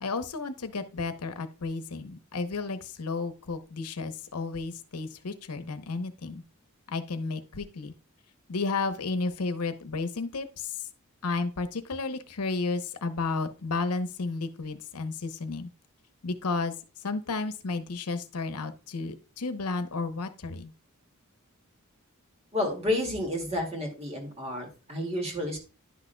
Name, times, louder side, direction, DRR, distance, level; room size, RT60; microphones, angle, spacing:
voice 1, 0.0-6.4 6.9-7.9 8.5-10.9 11.2-15.7 16.2-16.7 17.0-20.7, left 3 dB, 85° left, 10 dB, 0.8 m, -32 dB
voice 2, 22.5-25.6, left 1 dB, 30° right, 2 dB, 2.0 m, -30 dB
11.0 x 6.2 x 2.2 m, 0.32 s
head